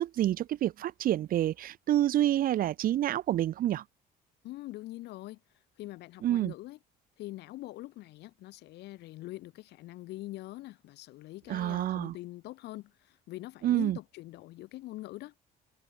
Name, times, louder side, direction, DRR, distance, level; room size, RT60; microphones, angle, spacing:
voice 1, 0.0-3.8 6.2-6.5 11.5-12.1 13.6-14.0, right 12 dB, 55° right, 0.8 m, -28 dB
voice 2, 4.4-5.4 5.8-6.8 7.2-15.3, left 17 dB, 80° left, 2.5 m, -43 dB
open air
cardioid pair, 110°, 17 cm